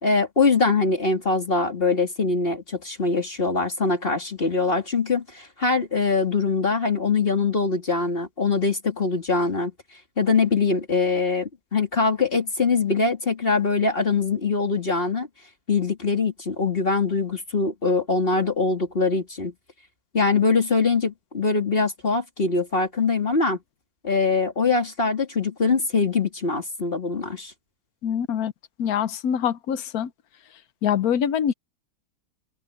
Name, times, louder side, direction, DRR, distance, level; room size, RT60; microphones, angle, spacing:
voice 1, 0.0-9.7 10.2-15.3 15.7-19.5 20.1-23.6 24.0-27.5, left 4 dB, 35° left, 2.8 m, -23 dB
voice 2, 28.0-28.5 28.8-30.1 30.8-31.5, left 8 dB, 75° left, 1.3 m, -24 dB
omnidirectional pair, 1.6 m